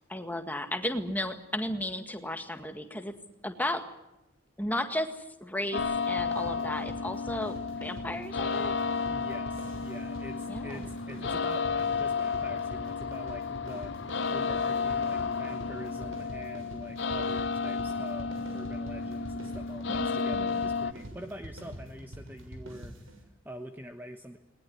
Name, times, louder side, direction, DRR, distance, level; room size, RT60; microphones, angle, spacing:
voice 1, 0.1-3.2 3.4-3.8 4.6-8.7 10.5-10.8 19.9-20.5, left 1 dB, 10° left, 7 dB, 1.8 m, -34 dB
sound 1, 5.7-20.9, left 5 dB, 55° left, 0.9 m, -32 dB
sound 2, 5.8-23.2, equal, 75° right, 6.9 m, -45 dB
voice 2, 8.9-24.4, equal, 10° right, 6 dB, 1.1 m, -45 dB
21.0 x 20.0 x 9.6 m, 0.94 s
head